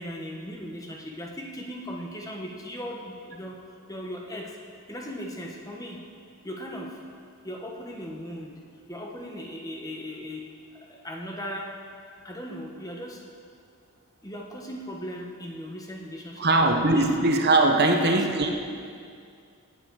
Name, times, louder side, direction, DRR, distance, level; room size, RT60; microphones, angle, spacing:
voice 1, 0.0-3.6 3.9-4.6 4.9-6.0 6.4-7.0 7.4-8.5 8.9-10.4 10.7-11.7 12.2-13.2 14.2-17.1 17.8-18.5, equal, 15° left, 0 dB, 1.2 m, -37 dB
voice 2, 16.4-18.5, right 2 dB, 45° right, 3 dB, 0.9 m, -21 dB
17.5 x 9.6 x 4.8 m, 2.3 s
head